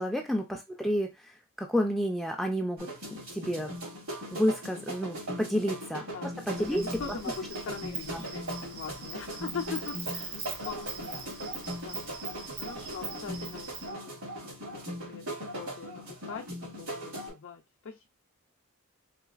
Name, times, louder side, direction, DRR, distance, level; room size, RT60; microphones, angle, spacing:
voice 1, 0.0-1.3 1.6-3.7 4.3-7.0 8.1-8.2, equal, ahead, 3 dB, 0.4 m, -30 dB
sound 1, 2.8-17.3, equal, 70° right, 2.4 m, -39 dB
Insect, 6.5-13.9, right 5 dB, 50° right, 1.0 m, -42 dB
voice 2, 6.7-14.2 14.7-18.1, left 5 dB, 60° left, 2 dB, 0.5 m, -42 dB
3.9 x 2.9 x 2.4 m, 0.21 s
head